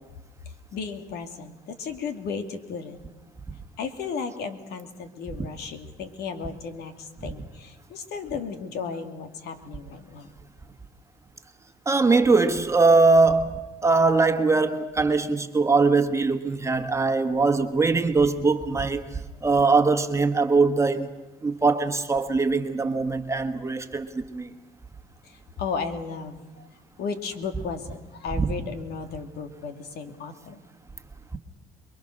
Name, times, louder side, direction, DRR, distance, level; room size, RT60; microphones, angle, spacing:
voice 1, 0.7-3.0 3.8-10.3 25.2-26.7 27.0-30.6, left 5 dB, 70° left, 2.4 m, -34 dB
voice 2, 11.8-21.1 21.4-24.5 28.4-28.5 31.3-31.4, right 3 dB, 15° right, 1.6 m, -21 dB
28.0 x 22.0 x 6.6 m
cardioid pair, 110°, 17 cm